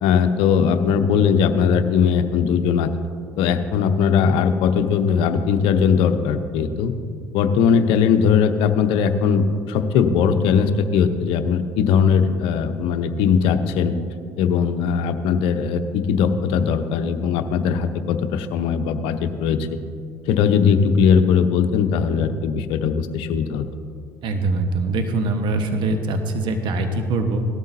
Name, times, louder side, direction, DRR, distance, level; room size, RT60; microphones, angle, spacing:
voice 1, 0.0-2.9 3.4-6.9 7.3-13.9 14.4-19.7 20.3-23.7, left 6 dB, 70° left, 9 dB, 0.8 m, -19 dB
voice 2, 24.2-27.5, right 2 dB, 60° right, 6 dB, 1.2 m, -23 dB
17.5 x 13.0 x 2.7 m, 2.2 s
hypercardioid pair, 60°, 9 cm